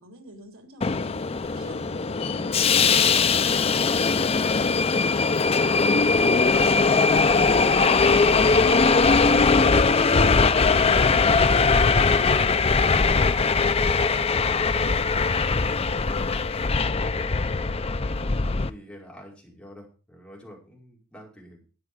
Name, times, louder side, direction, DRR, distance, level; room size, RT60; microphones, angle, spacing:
voice 1, 0.0-4.4, equal, 80° right, 3.1 m, -47 dB
Subway metro underground, 0.8-18.7, left 4 dB, 30° left, 0.5 m, -20 dB
voice 2, 6.8-21.6, equal, 5° left, 5.2 m, -47 dB
12.5 x 9.2 x 4.8 m
head